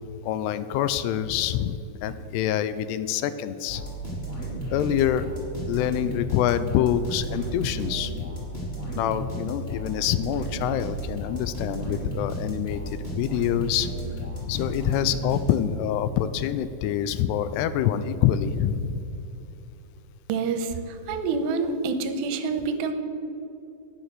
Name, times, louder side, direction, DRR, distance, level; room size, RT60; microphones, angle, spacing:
voice 1, 0.2-3.8 4.7-5.3 5.7-8.2 9.0-13.9 14.5-19.0, left 10 dB, 85° left, 13 dB, 2.5 m, -26 dB
sound 1, 3.7-15.9, right 1 dB, 15° left, 2.4 m, -33 dB
voice 2, 20.3-20.7 21.1-22.9, right 4 dB, 85° right, 8 dB, 3.0 m, -27 dB
11.0 x 9.8 x 6.7 m, 2.9 s
omnidirectional pair, 4.9 m